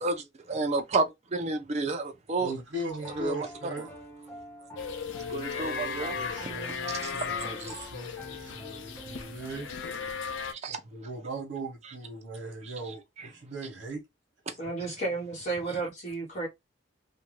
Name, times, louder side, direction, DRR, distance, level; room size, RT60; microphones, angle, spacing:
voice 1, 0.0-2.5 3.1-3.7 5.3-6.2 7.0-7.3 7.6-7.7 10.5-10.8, right 3 dB, 35° right, 0.5 m, -31 dB
voice 2, 2.4-3.9 6.1-9.7 10.7-14.0, right 2 dB, 75° right, 1.0 m, -39 dB
Piano, 3.0-9.9, equal, 10° left, 0.6 m, -46 dB
sound 1, 4.8-10.5, left 5 dB, 90° left, 0.5 m, -36 dB
voice 3, 14.6-16.5, right 3 dB, 40° left, 1.0 m, -32 dB
2.6 x 2.2 x 3.0 m
head